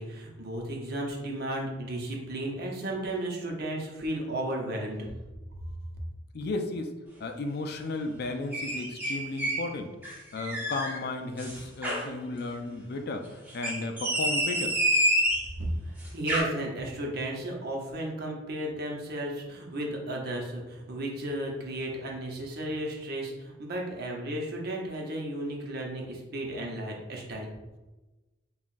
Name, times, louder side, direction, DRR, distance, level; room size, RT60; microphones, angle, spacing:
voice 1, 0.0-5.1 15.6-15.7 16.1-27.5, right 1 dB, 55° right, 0 dB, 0.8 m, -34 dB
voice 2, 6.3-6.9 7.2-14.7, left 2 dB, 55° left, 5 dB, 0.4 m, -34 dB
sound 1, 8.5-9.7 10.0-11.0 11.4-12.1 13.5-15.5 16.0-16.4, equal, 10° right, 0.9 m, -28 dB
5.5 x 2.4 x 2.5 m, 1.1 s
head